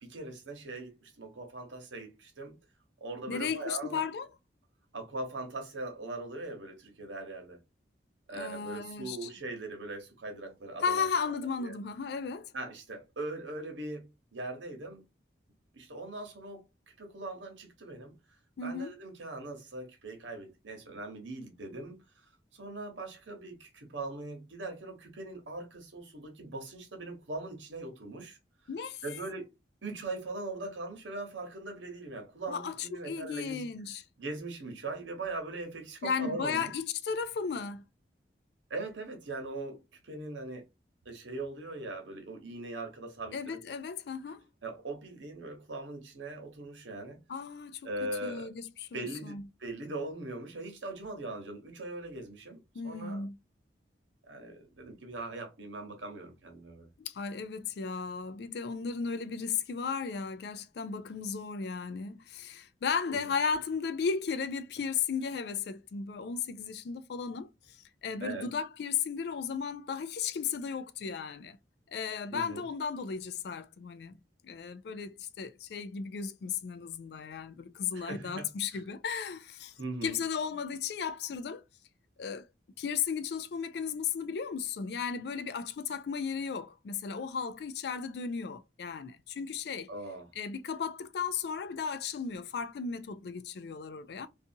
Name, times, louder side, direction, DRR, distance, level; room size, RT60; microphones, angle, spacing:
voice 1, 0.0-2.5 3.0-4.0 4.9-7.6 8.3-11.1 11.6-11.8 12.5-15.0 15.7-16.7 17.0-18.1 18.6-22.0 22.5-28.4 29.0-29.5 29.8-33.7 34.2-36.7 38.7-39.8 40.0-40.6 41.0-43.6 44.6-47.2 47.8-48.5 48.9-53.2 54.2-56.9 63.0-63.3 68.2-68.5 72.3-72.6 77.9-78.5 79.8-80.2 89.9-90.3, right 2 dB, 90° right, 1.0 m, -40 dB
voice 2, 3.3-4.3 8.3-9.3 10.8-12.5 18.6-19.0 28.7-29.0 32.5-34.0 36.0-37.8 43.3-44.5 47.3-47.9 48.2-49.4 52.7-53.4 57.0-71.6 71.9-74.2 74.4-79.7 80.0-81.6 82.2-82.5 82.8-89.9 90.4-94.3, left 6 dB, 60° left, 0.3 m, -35 dB
2.6 x 2.4 x 2.7 m
head